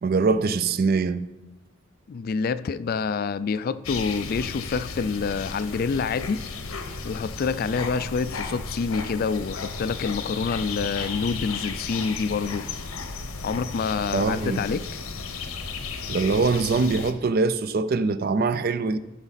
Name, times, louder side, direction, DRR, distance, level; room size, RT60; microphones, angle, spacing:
voice 1, 0.0-1.2 14.1-14.6 16.1-19.0, right 4 dB, 45° right, 0.4 m, -23 dB
voice 2, 2.1-6.4 7.0-12.7 13.4-14.8, left 5 dB, 45° left, 0.3 m, -27 dB
sound 1, 3.8-17.1, left 4 dB, 85° left, 0.9 m, -34 dB
13.5 x 6.0 x 4.1 m
head